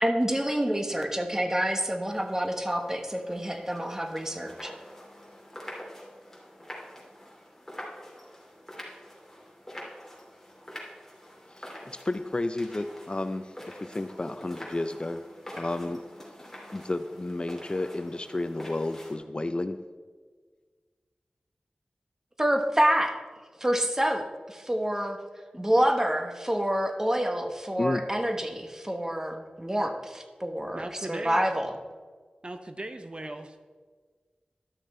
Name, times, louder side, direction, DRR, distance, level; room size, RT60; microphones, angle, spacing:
voice 1, 0.0-4.7 22.4-23.2 23.6-25.2 25.5-31.7, equal, 20° right, 5 dB, 1.2 m, -27 dB
sound 1, 2.1-19.2, equal, 10° left, 2.7 m, -46 dB
voice 2, 11.5-15.2 15.6-16.0 16.7-19.8 27.8-28.0, left 2 dB, 35° left, 10 dB, 0.5 m, -32 dB
voice 3, 30.7-31.5 32.4-33.7, right 1 dB, 35° right, 7 dB, 0.7 m, -38 dB
12.0 x 6.4 x 4.3 m, 1.5 s
wide cardioid pair, 55°, 3 cm